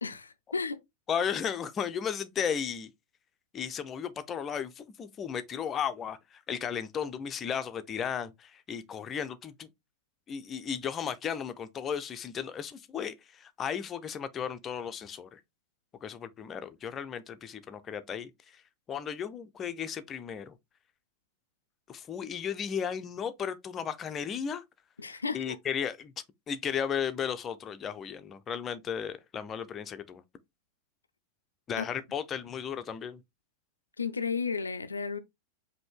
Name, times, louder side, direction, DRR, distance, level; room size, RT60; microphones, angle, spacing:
voice 1, 0.0-0.8 25.0-25.6 31.8-31.9 34.0-35.2, left 5 dB, 75° left, 0.4 m, -33 dB
voice 2, 1.1-2.9 3.5-9.7 10.3-15.4 16.0-18.3 18.9-20.6 21.9-24.6 25.3-26.1 26.5-30.2 31.7-33.2, left 7 dB, 25° left, 0.6 m, -35 dB
5.1 x 2.8 x 3.6 m
figure-of-eight pair, 90°, 0 cm